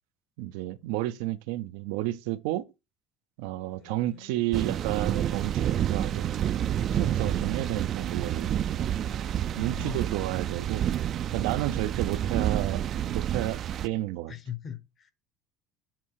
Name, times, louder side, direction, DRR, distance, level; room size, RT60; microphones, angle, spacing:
voice 1, 0.4-2.6 3.4-6.2 6.9-8.6 9.6-10.9 11.3-12.8 13.1-14.3, right 16 dB, 90° right, 0.5 m, -31 dB
sound 1, 3.6-12.3, left 6 dB, 70° left, 2.7 m, -56 dB
sound 2, 4.5-13.9, right 10 dB, 40° right, 0.4 m, -29 dB
voice 2, 6.9-7.6 9.5-10.0 14.3-15.1, left 9 dB, 35° left, 1.0 m, -41 dB
7.6 x 4.2 x 4.7 m
cardioid pair, 145°, 0 cm